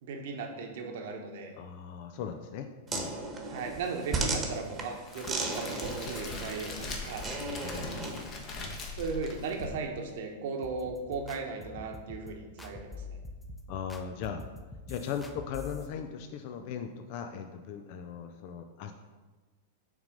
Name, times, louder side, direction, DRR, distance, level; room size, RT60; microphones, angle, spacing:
voice 1, 0.0-1.5 3.5-7.2 9.0-13.2, right 4 dB, 65° right, 3 dB, 1.0 m, -37 dB
voice 2, 1.6-3.2 7.6-8.8 13.7-14.4 14.9-18.9, left 7 dB, 55° left, 6 dB, 0.4 m, -39 dB
sound 1, 2.9-8.3, right 3 dB, 20° right, 1.1 m, -36 dB
Crackle, 5.1-10.1, left 3 dB, 35° left, 1.1 m, -41 dB
sound 2, 10.6-15.9, left 3 dB, 5° left, 0.6 m, -45 dB
6.0 x 3.8 x 5.2 m, 1.3 s
hypercardioid pair, 115°, 0 cm